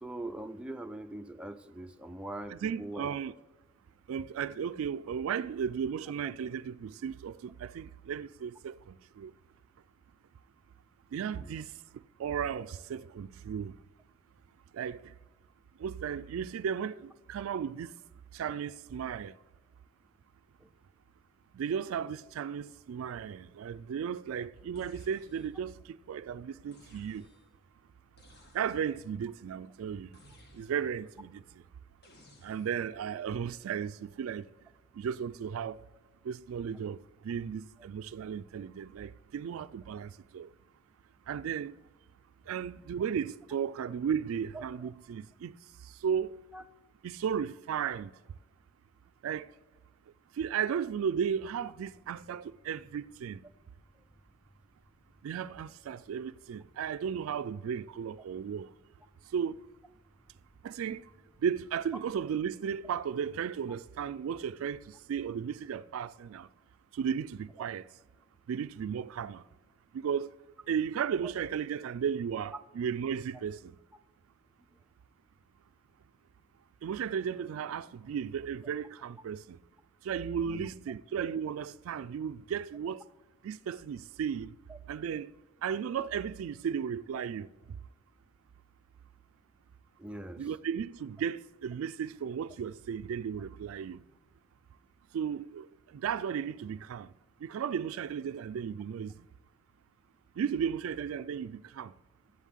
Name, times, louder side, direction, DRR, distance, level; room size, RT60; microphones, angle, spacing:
voice 1, 0.0-3.1 11.3-11.6 20.6-20.7 44.5-44.9 46.5-46.6 71.2-71.3 80.4-80.7 84.7-84.8 90.0-90.5, right 1 dB, 5° right, 0.4 m, -42 dB
voice 2, 2.5-3.3 4.1-9.3 11.1-11.7 12.2-13.7 14.7-15.1 15.8-17.9 18.3-19.3 21.5-27.3 28.5-30.1 30.5-31.4 32.4-34.5 35.0-35.8 36.2-40.5 41.3-41.8 42.5-45.5 46.0-46.4 47.0-48.1 49.2-49.5 50.4-53.4 55.2-58.7 59.3-59.6 60.6-61.0 61.4-66.5 66.9-67.9 68.5-69.4 69.9-70.3 70.7-73.7 76.8-79.6 80.0-83.0 83.4-84.5 84.9-85.3 85.6-87.5 90.4-94.0 95.1-97.1 97.4-99.2 100.4-101.9, right 7 dB, 75° right, 0.3 m, -35 dB
sound 1, 24.7-25.7 26.7-27.6 28.2-29.0 30.1-31.1 32.0-32.9, left 1 dB, 50° left, 1.7 m, -59 dB
sound 2, 51.0-62.4, equal, 15° left, 2.0 m, -66 dB
7.7 x 7.3 x 8.4 m
head